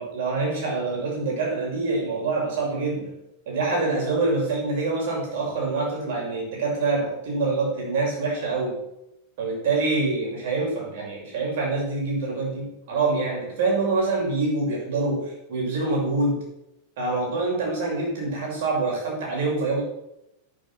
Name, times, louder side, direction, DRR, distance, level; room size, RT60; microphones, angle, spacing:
voice 1, 0.0-3.2 3.5-8.8 9.4-16.4 17.0-19.8, right 3 dB, 55° right, -1 dB, 6.5 m, -25 dB
12.0 x 9.9 x 6.0 m, 0.85 s
figure-of-eight pair, 90°, 0 cm